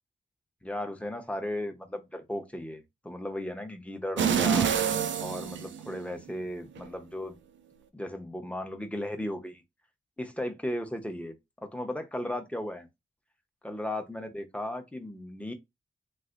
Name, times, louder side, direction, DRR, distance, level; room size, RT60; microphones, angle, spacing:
voice 1, 0.6-4.7 5.2-7.4 7.9-9.6 10.2-12.9 13.6-15.5, left 1 dB, 5° left, 0.9 m, -36 dB
sound 1, 4.2-6.3 6.8-6.9, right 7 dB, 80° right, 0.5 m, -27 dB
3.2 x 2.6 x 2.5 m
cardioid pair, 50°, 19 cm